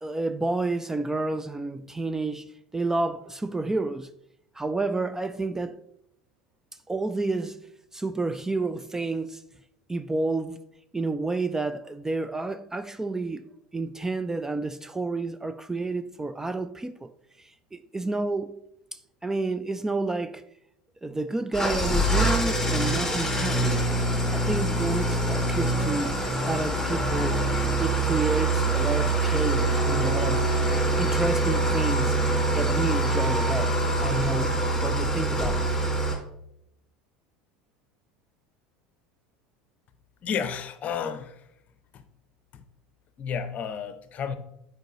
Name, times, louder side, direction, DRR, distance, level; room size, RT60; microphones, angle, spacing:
voice 1, 0.0-4.1 4.5-5.8 6.9-7.6 7.9-9.4 9.9-10.6 10.9-13.4 13.7-17.1 17.4-18.6 18.9-20.4 21.0-24.1 24.3-26.2 26.5-27.4 27.8-32.2 32.5-33.7 34.0-35.7, right 3 dB, 10° right, 0.3 m, -30 dB
Engine starting / Idling, 21.5-36.1, right 2 dB, 10° left, 2.2 m, -24 dB
voice 2, 40.2-41.4 41.9-42.0 42.5-42.6 43.2-44.3, left 7 dB, 40° left, 0.7 m, -32 dB
8.9 x 4.5 x 3.0 m
hypercardioid pair, 75°, 4 cm